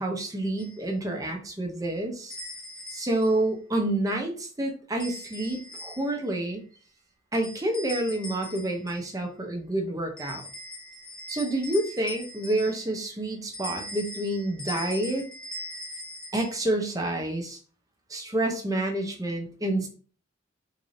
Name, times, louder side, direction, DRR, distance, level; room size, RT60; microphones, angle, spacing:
voice 1, 0.0-2.4 2.9-6.7 7.3-10.5 11.3-15.3 16.3-17.6 18.1-19.9, right 1 dB, 20° right, 3 dB, 0.7 m, -28 dB
sound 1, 0.6-0.8 2.3-3.4 5.0-6.2 7.3-9.1 10.2-13.0 13.5-16.6, left 1 dB, 5° left, 0.9 m, -41 dB
3.7 x 2.7 x 3.1 m, 0.39 s
head